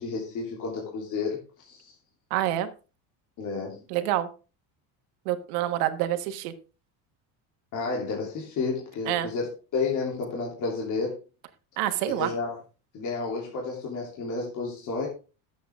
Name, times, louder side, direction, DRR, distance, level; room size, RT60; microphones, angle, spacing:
voice 1, 0.0-1.9 3.4-3.8 7.7-11.2 12.1-12.6 12.9-15.1, left 4 dB, 45° left, -2 dB, 3.1 m, -31 dB
voice 2, 2.3-2.7 3.9-4.3 5.2-6.5 9.1-9.3 11.8-12.3, right 13 dB, 85° right, 9 dB, 1.5 m, -27 dB
12.5 x 8.3 x 3.6 m, 0.33 s
cardioid pair, 160°, 43 cm